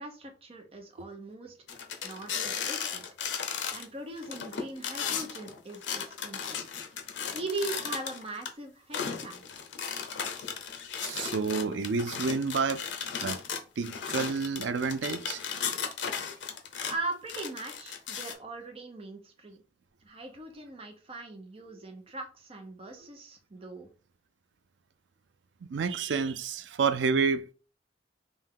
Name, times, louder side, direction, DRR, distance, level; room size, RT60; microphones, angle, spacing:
voice 1, 0.0-1.5 2.0-3.0 3.7-5.8 6.1-6.6 7.3-9.4 16.9-19.6 20.0-23.9, right 2 dB, 35° right, 0.8 m, -40 dB
sound 1, 1.7-3.8 4.2-8.5 8.9-17.0 17.3-18.3, left 7 dB, 90° left, 0.6 m, -35 dB
voice 2, 11.0-12.9 13.2-13.4 13.8-15.4 25.6-27.5, right 5 dB, 85° right, 0.4 m, -29 dB
3.4 x 2.7 x 3.7 m
head